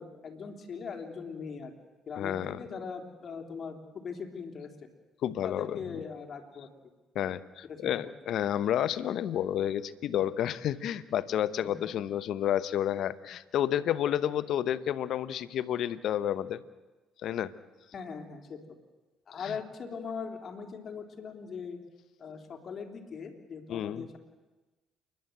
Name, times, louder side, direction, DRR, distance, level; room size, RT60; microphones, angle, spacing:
voice 1, 0.0-1.7 2.1-4.7 5.4-6.7 7.6-8.0 11.6-11.8 17.9-18.6 19.3-21.8 22.2-24.2, left 5 dB, 50° left, 4 dB, 3.4 m, -40 dB
voice 2, 2.2-2.6 5.2-5.8 7.1-16.6 17.2-17.5 19.4-19.5 23.7-24.1, left 10 dB, 65° left, 16 dB, 0.8 m, -30 dB
29.0 x 11.5 x 8.0 m, 1.2 s
hypercardioid pair, 55°, 0 cm